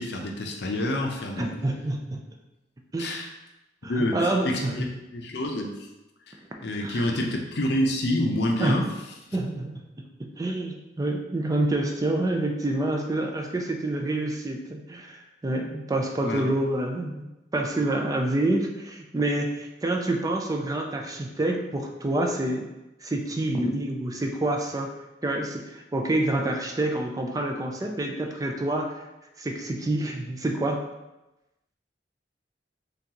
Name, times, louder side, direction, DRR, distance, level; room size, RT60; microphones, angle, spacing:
voice 1, 0.0-1.5 3.0-3.3 3.8-5.8 6.3-6.4 6.6-8.9 16.2-16.5, left 1 dB, 70° left, 2 dB, 0.6 m, -27 dB
voice 2, 1.4-2.2 2.9-3.2 3.8-4.9 6.8-7.1 8.6-8.9 9.3-17.3 17.5-22.6 23.0-24.9 25.2-29.0 29.4-30.8, right 1 dB, 20° right, 2 dB, 0.4 m, -27 dB
3.8 x 3.5 x 2.9 m, 0.99 s
head